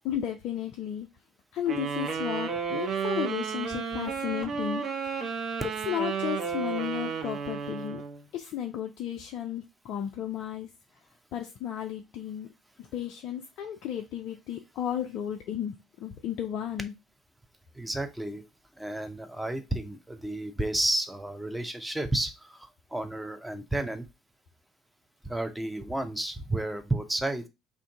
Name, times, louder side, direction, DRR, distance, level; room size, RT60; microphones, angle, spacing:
voice 1, 0.1-1.1 1.5-4.8 5.1-5.4 5.8-8.0 8.3-10.7 11.3-12.5 12.8-16.9, left 10 dB, 55° left, 0.4 m, -34 dB
sound 1, 1.7-8.2, right 6 dB, 45° right, 0.6 m, -32 dB
voice 2, 17.7-18.4 18.8-24.1 25.2-27.5, right 1 dB, 5° right, 0.6 m, -32 dB
2.5 x 2.5 x 3.5 m
figure-of-eight pair, 50°, 0 cm